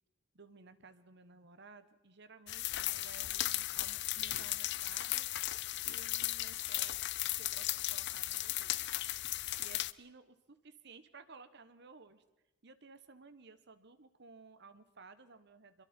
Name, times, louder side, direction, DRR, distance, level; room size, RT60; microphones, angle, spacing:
voice 1, 0.3-5.3 5.8-7.0 7.4-8.9 9.6-12.2 12.6-15.8, right 4 dB, 55° right, 12 dB, 1.2 m, -56 dB
sound 1, 2.5-9.9, left 15 dB, 55° left, 0.6 m, -36 dB
26.0 x 22.5 x 4.4 m, 1.1 s
head